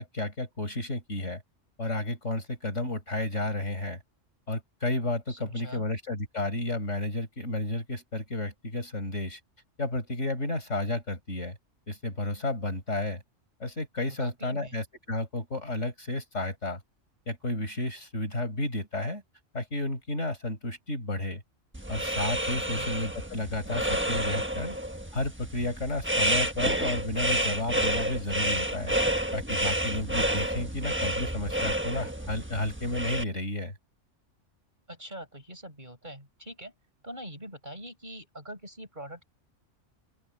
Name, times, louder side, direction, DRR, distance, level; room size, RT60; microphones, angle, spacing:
voice 1, 0.0-1.4 1.8-4.0 4.5-9.4 9.8-11.6 11.9-13.2 13.6-16.8 17.3-19.2 19.5-21.4 21.9-24.8 25.1-29.0 29.3-33.7, left 2 dB, 65° left, 5.2 m, -32 dB
voice 2, 5.3-5.8 14.2-14.8 22.7-22.9 34.9-36.7 37.0-39.2, equal, 35° right, 7.3 m, -43 dB
sound 1, 21.7-33.2, right 1 dB, 10° right, 1.2 m, -30 dB
open air
omnidirectional pair, 1.3 m